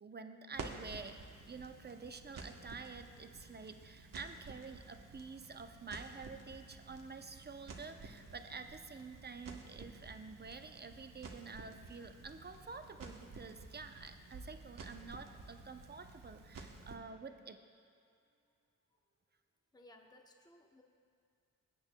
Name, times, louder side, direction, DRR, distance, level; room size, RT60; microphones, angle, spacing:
voice 1, 0.0-17.6, right 4 dB, 30° right, 7 dB, 0.6 m, -49 dB
Crackle, 0.5-17.0, right 3 dB, 75° right, 1.0 m, -52 dB
sound 1, 8.3-15.7 16.2-17.1 17.8-17.9 18.2-19.2, right 2 dB, 55° right, 1.7 m, -70 dB
voice 2, 19.7-20.8, left 1 dB, 10° left, 2 dB, 0.8 m, -60 dB
19.5 x 8.7 x 2.2 m, 2.3 s
cardioid pair, 75°, 33 cm